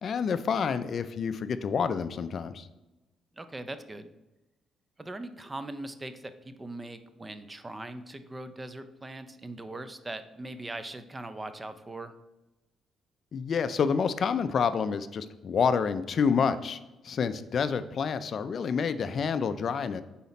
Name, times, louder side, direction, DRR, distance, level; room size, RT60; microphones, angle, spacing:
voice 1, 0.0-2.7 13.3-16.8 17.0-20.0, left 6 dB, 55° left, 12 dB, 0.3 m, -28 dB
voice 2, 3.4-4.1 5.0-12.1, right 2 dB, 20° right, 11 dB, 0.5 m, -40 dB
5.6 x 4.2 x 4.1 m, 1.0 s
cardioid pair, 90°, 0 cm